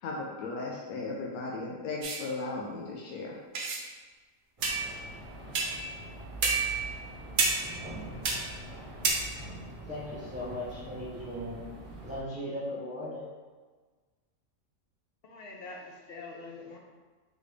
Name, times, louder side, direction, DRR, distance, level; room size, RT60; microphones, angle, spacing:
voice 1, 0.0-3.4, left 3 dB, 90° left, -2 dB, 1.1 m, -36 dB
sound 1, 2.0-2.2 3.5-3.8 4.6-5.0 5.5-5.9 6.4-6.9 7.4-7.9 8.2-8.5 9.0-9.1, right 4 dB, 70° right, 1.1 m, -29 dB
sound 2, 4.6-12.2, right 1 dB, 25° right, 1.0 m, -44 dB
voice 2, 9.9-11.6 12.0-13.2, left 1 dB, 10° right, -8 dB, 0.4 m, -37 dB
voice 3, 15.2-16.8, left 3 dB, 55° left, -1 dB, 0.7 m, -44 dB
4.1 x 3.3 x 3.2 m, 1.4 s
omnidirectional pair, 1.5 m